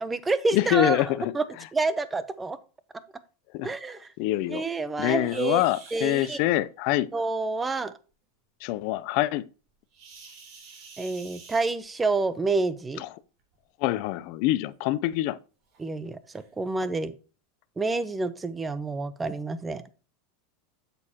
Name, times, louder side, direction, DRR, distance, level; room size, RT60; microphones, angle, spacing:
voice 1, 0.0-1.4 1.7-2.6 3.6-4.1 4.5-5.6 5.9-6.4 7.1-7.9 11.0-13.0 15.8-17.1 17.8-19.8, right 3 dB, 15° right, 0.7 m, -28 dB
voice 2, 0.5-1.3 3.5-3.7 4.2-4.6 5.0-7.1 8.6-9.5 13.0-13.1 13.8-15.4, left 15 dB, 60° left, 0.5 m, -25 dB
sound 1, 5.2-6.4 9.9-12.2 13.4-13.6 14.1-14.2 14.8-14.9 15.7-15.8 16.3-16.5, right 5 dB, 50° right, 3.1 m, -48 dB
8.2 x 6.9 x 2.9 m
hypercardioid pair, 110°, 0 cm